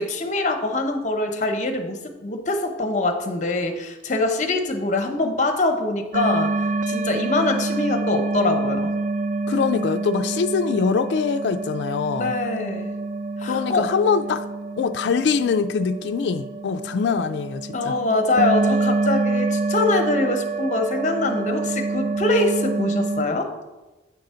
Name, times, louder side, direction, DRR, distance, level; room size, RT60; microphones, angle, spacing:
voice 1, 0.0-6.5 6.9-8.9 12.1-12.9 13.4-13.8 17.7-23.5, left 2 dB, 40° left, 0.8 m, -23 dB
sound 1, 6.1-23.3, right 3 dB, 45° right, 0.4 m, -27 dB
voice 2, 9.5-12.3 13.4-14.5 14.8-17.9, left 5 dB, 70° left, 0.3 m, -23 dB
8.8 x 3.8 x 5.6 m
head